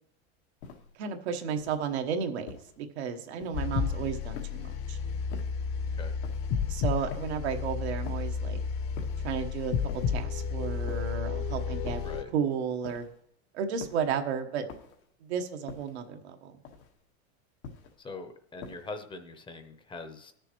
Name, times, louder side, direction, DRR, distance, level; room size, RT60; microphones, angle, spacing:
sound 1, 0.6-1.0 1.5-1.9 2.5-2.8 3.4-3.8 4.3-4.8 5.3-5.7 6.2-6.6 7.1-7.5 8.1-8.4 9.0-9.3 9.9-10.3 10.9-11.3 11.9-12.2 12.8-13.3 13.8-14.2 14.7-15.1 15.7-16.1 16.6-17.0 17.6-18.0 18.6-19.0, left 5 dB, 90° left, 1.5 m, -46 dB
voice 1, 1.0-5.0 6.6-8.6 9.2-12.0 12.3-13.1 13.5-14.6 15.2-16.5, right 7 dB, 90° right, 5 dB, 1.2 m, -33 dB
sound 2, 3.5-12.2, left 6 dB, 45° left, 0.8 m, -32 dB
voice 2, 12.0-12.3 18.0-20.3, left 3 dB, 15° left, 8 dB, 0.7 m, -42 dB
18.0 x 6.8 x 3.0 m, 0.69 s
supercardioid pair, 135°, 32 cm